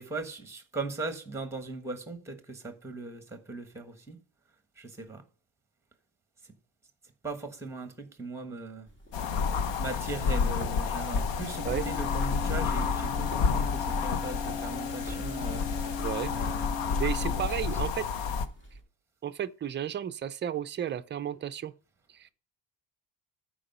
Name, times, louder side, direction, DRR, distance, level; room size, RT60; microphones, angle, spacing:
voice 1, 0.0-4.2 4.8-5.2 6.4-6.5 7.2-8.9 9.8-16.9 17.3-17.4, right 3 dB, 5° right, 1.3 m, -39 dB
sound 1, 8.9-18.8, right 1 dB, 25° left, 1.9 m, -45 dB
sound 2, 9.1-18.5, left 6 dB, 75° left, 1.1 m, -30 dB
Wind instrument woodwind instrument, 11.5-17.6, left 4 dB, 60° left, 1.4 m, -40 dB
voice 2, 16.0-16.3 17.0-18.1 19.2-21.7 22.1-22.3, right 10 dB, 25° right, 0.4 m, -33 dB
9.9 x 4.9 x 5.4 m
cardioid pair, 160°, 45 cm